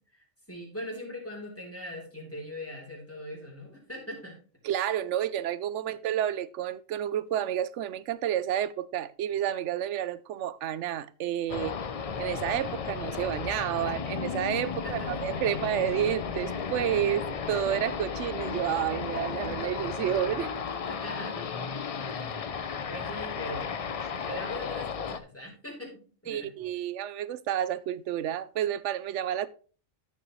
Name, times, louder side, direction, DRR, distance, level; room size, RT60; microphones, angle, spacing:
voice 1, 0.5-4.4 14.7-15.1 20.9-21.5 21.8-22.5 22.9-23.8 24.3-26.5, left 1 dB, 10° left, 3.5 m, -41 dB
voice 2, 4.6-11.8 12.2-20.5 26.3-29.5, right 11 dB, 70° right, 0.9 m, -30 dB
sound 1, 11.5-25.2, left 6 dB, 55° left, 0.4 m, -34 dB
14.0 x 5.4 x 3.1 m
omnidirectional pair, 1.4 m